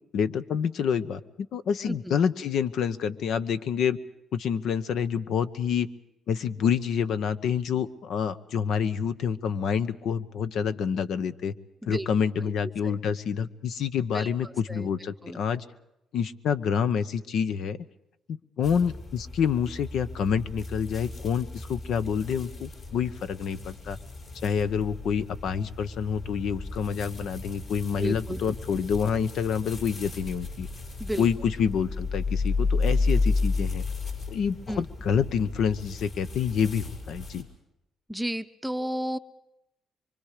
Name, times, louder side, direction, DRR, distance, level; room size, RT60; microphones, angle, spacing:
voice 1, 0.1-4.0 4.3-5.9 6.3-11.5 11.9-15.6 16.1-17.8 18.3-24.0 24.4-30.7 31.2-33.9 34.3-37.5, left 7 dB, 70° left, 12 dB, 0.9 m, -27 dB
voice 2, 1.9-2.2 11.8-12.1 12.4-12.5 12.8-13.0 14.1-14.9 15.2-15.4 28.0-28.8 31.0-31.3 34.7-34.8 38.1-39.2, right 1 dB, 5° right, 8 dB, 0.7 m, -33 dB
sound 1, 18.6-37.4, left 3 dB, 50° left, 6.0 m, -33 dB
24.5 x 24.5 x 5.0 m, 0.86 s
cardioid pair, 90°, 0 cm